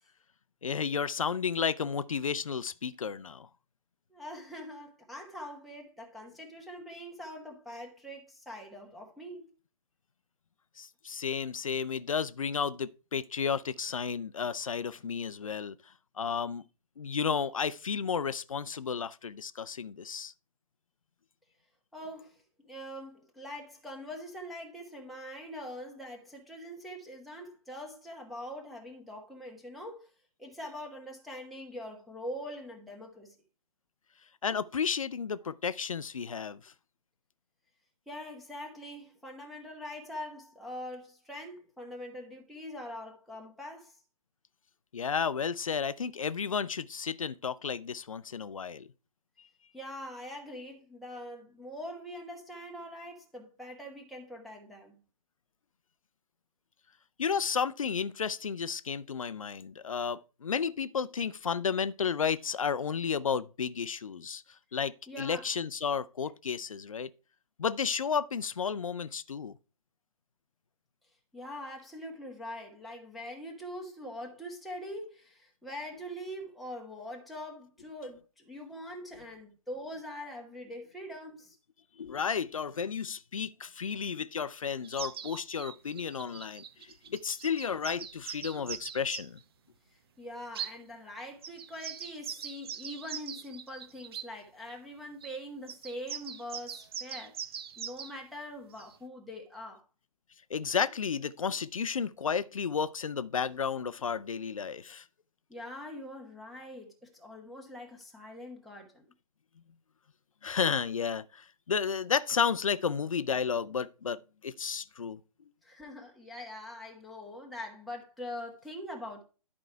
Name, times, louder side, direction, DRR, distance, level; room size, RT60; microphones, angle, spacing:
voice 1, 0.6-3.5 10.8-15.8 16.2-16.6 17.0-20.3 34.4-36.7 44.9-48.9 57.2-64.4 64.7-67.1 67.6-69.5 82.0-86.6 87.1-89.4 100.5-105.0 110.4-115.2, left 6 dB, 60° left, 0.6 m, -32 dB
voice 2, 4.1-9.5 21.9-30.1 30.4-33.3 38.1-44.0 49.7-54.9 65.1-65.5 71.3-81.6 89.9-97.4 97.8-99.8 105.5-109.1 115.6-119.2, left 1 dB, ahead, 1.3 m, -43 dB
sound 1, 84.8-89.4 90.6-90.7 91.4-94.3 95.2-95.4 95.7-98.1 98.8-98.9, right 8 dB, 40° right, 0.9 m, -41 dB
11.0 x 4.8 x 4.6 m
figure-of-eight pair, 130°, 19 cm